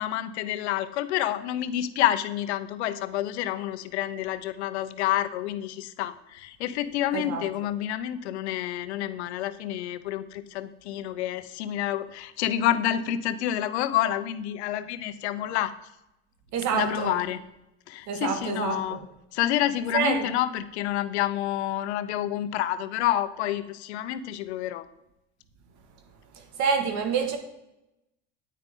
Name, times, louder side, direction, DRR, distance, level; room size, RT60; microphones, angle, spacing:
voice 1, 0.0-15.7 16.7-17.4 17.9-19.0 19.3-24.8, left 12 dB, 85° left, 0.8 m, -28 dB
voice 2, 7.1-7.4 16.5-17.2 18.1-19.0 19.9-20.3 26.6-27.4, right 5 dB, 60° right, 2.0 m, -27 dB
9.6 x 9.5 x 3.7 m
supercardioid pair, 90°, 32 cm